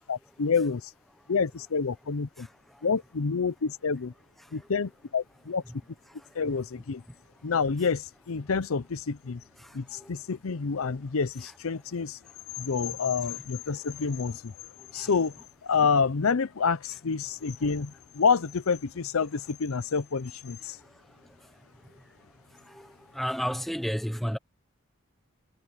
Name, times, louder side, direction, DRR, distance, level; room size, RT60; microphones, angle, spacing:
voice 1, 0.1-0.8 1.3-2.5 2.8-4.1 4.5-5.6 6.3-7.0 7.4-9.4 9.7-12.2 12.6-14.5 14.9-15.3 15.6-20.8, left 5 dB, 85° left, 0.6 m, -28 dB
voice 2, 22.7-24.4, equal, ahead, 1.0 m, -32 dB
head